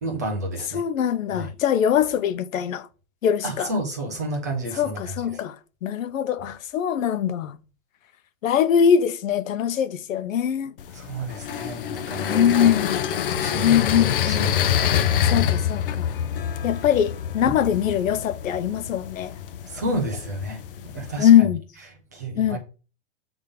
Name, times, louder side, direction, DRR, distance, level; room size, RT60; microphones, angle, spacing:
voice 1, 0.0-0.8 1.3-1.5 3.4-5.0 10.9-12.8 13.3-15.2 17.4-17.6 19.6-21.3 22.1-22.6, right 1 dB, 15° right, 0.4 m, -31 dB
voice 2, 0.7-2.9 3.2-3.7 4.8-5.6 5.8-7.6 8.4-10.7 12.3-13.0 13.6-14.5 15.3-16.1 16.6-19.4 21.2-21.6 22.4-22.6, left 9 dB, 80° left, 0.8 m, -22 dB
sound 1, 10.8-21.2, left 9 dB, 45° left, 0.5 m, -26 dB
8.2 x 3.5 x 5.2 m
supercardioid pair, 170°, 40 cm